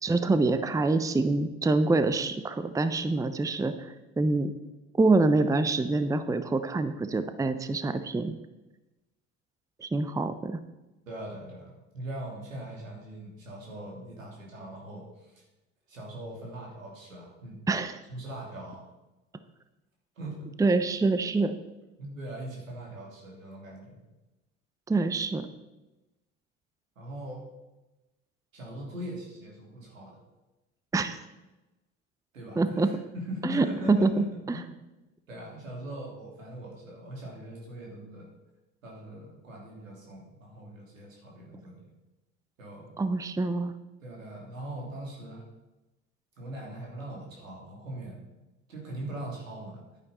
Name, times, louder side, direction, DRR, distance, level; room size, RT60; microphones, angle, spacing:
voice 1, 0.0-4.5 5.0-8.3 9.8-10.6 17.7-18.0 20.6-21.6 24.9-25.5 30.9-31.2 32.6-32.9 33.4-34.6 43.0-43.7, right 3 dB, 10° right, 11 dB, 0.7 m, -26 dB
voice 2, 11.1-15.4 15.9-17.6 18.1-18.9 20.2-20.7 22.0-24.0 26.9-27.4 28.5-30.2 32.3-34.2 34.5-34.7 35.3-38.3 38.8-41.9 42.6-43.0 44.0-45.4 46.4-48.2 48.7-49.8, right 1 dB, 85° right, -2 dB, 3.2 m, -41 dB
11.0 x 9.7 x 4.3 m, 1.0 s
figure-of-eight pair, 65°, 38 cm